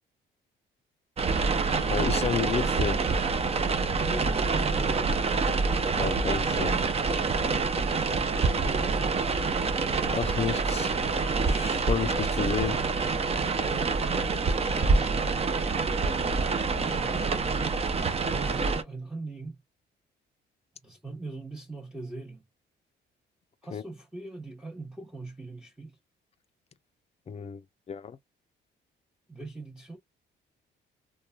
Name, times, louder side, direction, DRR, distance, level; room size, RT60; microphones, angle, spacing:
sound 1, 1.2-18.8, right 4 dB, 30° right, 0.5 m, -26 dB
voice 1, 1.8-3.0 5.9-6.8 10.1-10.9 11.4-12.8 23.7-23.8 27.3-27.6 27.9-28.2, left 7 dB, 30° left, 0.4 m, -31 dB
voice 2, 4.1-5.2 8.7-9.2 14.8-15.2 16.7-17.6 18.3-19.6 20.8-22.4 23.6-26.0 29.3-30.0, right 2 dB, 5° right, 0.8 m, -40 dB
3.1 x 2.2 x 2.3 m
cardioid pair, 90°, 20 cm